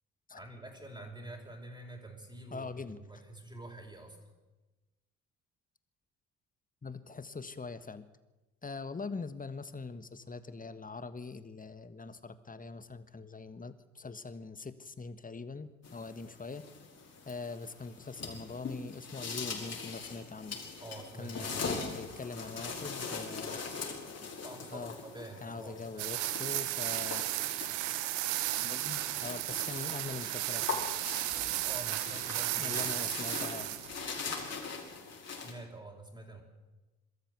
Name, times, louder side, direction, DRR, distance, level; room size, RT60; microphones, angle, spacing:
voice 1, 0.3-4.2 16.2-16.4 20.8-21.8 24.4-26.3 31.6-32.9 35.4-36.4, right 1 dB, 10° right, 2 dB, 5.2 m, -47 dB
voice 2, 2.5-3.0 6.8-8.0 8.6-16.6 17.2-20.6 21.2-23.7 24.7-24.9 25.4-27.2 28.6-30.9 32.6-33.8, left 4 dB, 20° left, 13 dB, 1.5 m, -43 dB
sound 1, 15.8-35.5, left 4 dB, 40° left, 5.4 m, -42 dB
sound 2, 26.0-34.0, right 15 dB, 75° right, 1.2 m, -34 dB
23.5 x 13.0 x 8.3 m, 1.1 s
hypercardioid pair, 50°, 39 cm